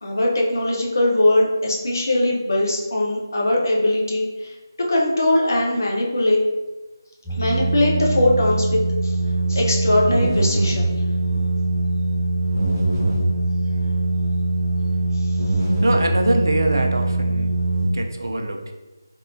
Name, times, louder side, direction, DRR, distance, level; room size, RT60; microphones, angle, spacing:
voice 1, 0.0-4.5 4.9-6.4 7.4-9.2 9.5-10.9 15.2-15.3, left 1 dB, 55° left, -2 dB, 0.7 m, -20 dB
sound 1, 7.2-17.9, right 2 dB, 15° right, 0.9 m, -22 dB
voice 2, 15.8-17.5 17.9-18.7, right 1 dB, 60° right, 3 dB, 0.4 m, -23 dB
3.6 x 2.1 x 2.6 m, 1.1 s
figure-of-eight pair, 160°, 2 cm